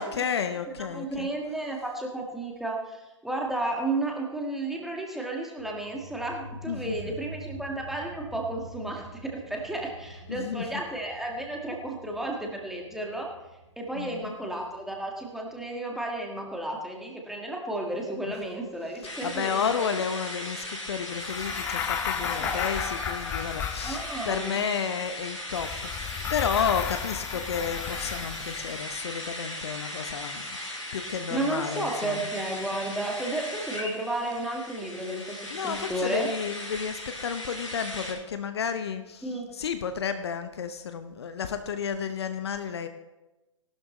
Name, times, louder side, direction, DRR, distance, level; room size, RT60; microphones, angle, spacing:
voice 1, 0.0-1.3 6.7-7.1 10.3-10.7 13.9-14.3 19.2-30.6 30.9-32.3 35.5-42.9, left 7 dB, 55° left, 9 dB, 0.8 m, -32 dB
voice 2, 0.7-13.3 13.8-19.9 22.2-22.7 23.8-24.6 31.3-36.3 39.2-39.5, right 2 dB, ahead, 0 dB, 1.8 m, -33 dB
sound 1, 5.6-16.7, equal, 85° right, 4.6 m, -46 dB
sound 2, 19.0-38.1, left 1 dB, 90° left, 4.3 m, -38 dB
sound 3, 21.2-24.4 25.5-28.7, left 9 dB, 15° left, 0.5 m, -34 dB
18.0 x 12.0 x 3.1 m, 1.0 s
figure-of-eight pair, 115°, 16 cm